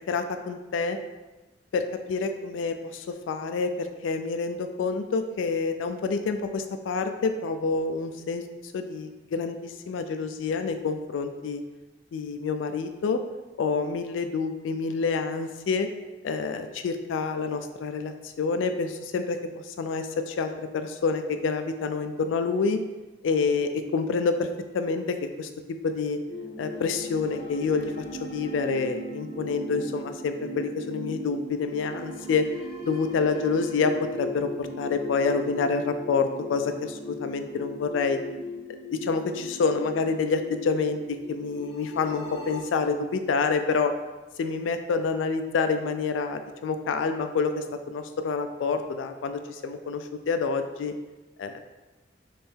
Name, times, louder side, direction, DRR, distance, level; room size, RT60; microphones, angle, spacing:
voice 1, 0.1-1.0 1.7-8.4 8.7-11.6 12.1-13.2 13.6-15.9 16.2-19.4 19.7-22.8 23.2-24.5 24.7-25.5 25.8-26.2 26.6-32.4 32.9-38.2 38.9-43.9 44.4-50.9 51.4-51.6, left 4 dB, 85° left, 7 dB, 0.3 m, -28 dB
sound 1, 26.3-42.6, left 2 dB, 35° left, 0.8 m, -38 dB
3.5 x 3.2 x 4.4 m, 1.1 s
head